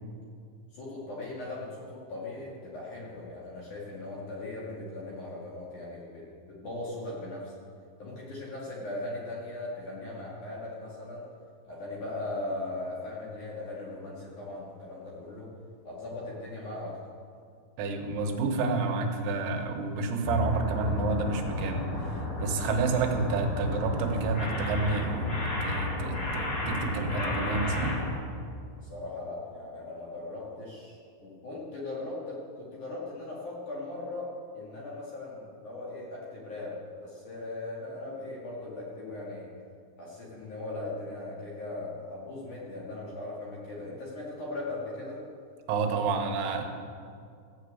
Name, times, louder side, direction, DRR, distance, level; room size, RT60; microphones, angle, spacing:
voice 1, 0.7-6.3 6.6-7.6 8.0-11.3 11.6-15.5 15.8-17.0 28.9-39.5 40.0-45.2, left 2 dB, 50° left, -5 dB, 2.6 m, -39 dB
voice 2, 17.8-21.9 22.4-28.0 45.7-46.6, right 4 dB, 90° right, 3 dB, 4.0 m, -29 dB
sound 1, 20.2-28.1, left 2 dB, 70° left, 0.9 m, -32 dB
15.0 x 7.4 x 8.3 m, 2.3 s
omnidirectional pair, 6.0 m